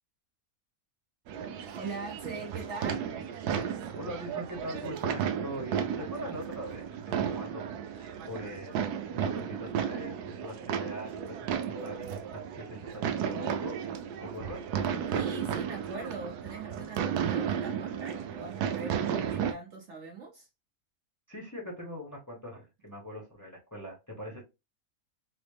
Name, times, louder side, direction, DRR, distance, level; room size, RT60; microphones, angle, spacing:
sound 1, 1.3-19.5, right 8 dB, 90° right, 1.1 m, -34 dB
voice 1, 1.7-3.1 15.1-20.5, right 4 dB, 55° right, 0.9 m, -41 dB
voice 2, 3.9-8.8 9.1-14.6 21.3-24.4, equal, 15° left, 1.0 m, -42 dB
4.0 x 2.0 x 3.3 m
omnidirectional pair, 1.6 m